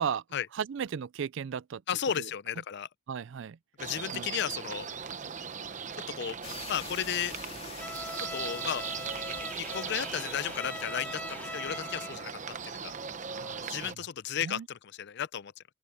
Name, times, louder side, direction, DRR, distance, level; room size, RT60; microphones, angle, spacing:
voice 1, 0.5-1.8 2.2-2.3 3.1-3.6 4.1-4.3 13.3-14.1 14.4-14.7, right 7 dB, 65° right, 0.4 m, -35 dB
voice 2, 1.9-2.9 3.8-4.9 6.2-6.4 6.7-7.4 8.3-8.8 9.6-12.3 12.6-12.9 13.7-15.6, left 9 dB, 55° left, 0.5 m, -34 dB
sound 1, 3.8-14.0, right 6 dB, 40° right, 0.9 m, -39 dB
sound 2, 6.4-12.0, left 5 dB, 30° left, 2.5 m, -47 dB
Bowed string instrument, 7.8-12.3, left 1 dB, 10° left, 0.7 m, -41 dB
open air
head